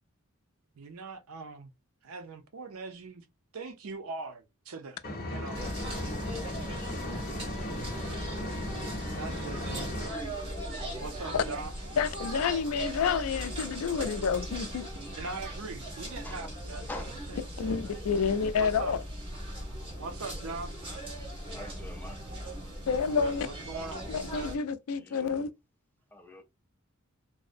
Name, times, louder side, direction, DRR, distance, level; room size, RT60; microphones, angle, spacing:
voice 1, 0.8-1.7 2.0-3.3 3.5-5.6 9.2-10.0 10.9-11.7 15.2-16.9 17.3-17.4 17.6-18.2 18.6-19.0 20.0-20.7 23.1-24.0, right 4 dB, 75° right, 0.5 m, -41 dB
Engine, 5.0-10.1, left 1 dB, 45° left, 0.8 m, -36 dB
sound 1, 5.5-24.6, right 1 dB, 25° right, 1.0 m, -39 dB
voice 2, 12.0-14.9 17.6-19.0 22.9-23.5 24.1-25.5, left 6 dB, 75° left, 0.4 m, -29 dB
voice 3, 21.4-22.3 25.0-25.3 26.1-26.4, left 2 dB, 10° left, 0.4 m, -44 dB
2.6 x 2.0 x 2.4 m
head